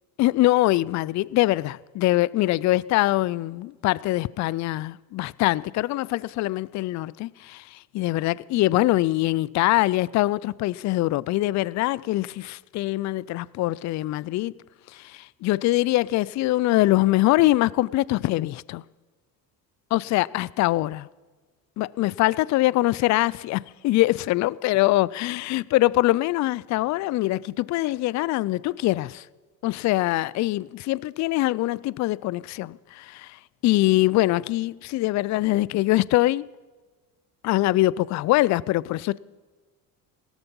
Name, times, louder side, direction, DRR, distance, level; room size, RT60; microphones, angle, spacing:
voice 1, 0.2-14.5 14.9-18.8 19.9-21.1 21.8-29.2 29.6-33.4 33.6-36.5 37.4-39.2, left 17 dB, 40° left, 0.4 m, -23 dB
17.0 x 13.5 x 5.5 m
hypercardioid pair, 70°, 48 cm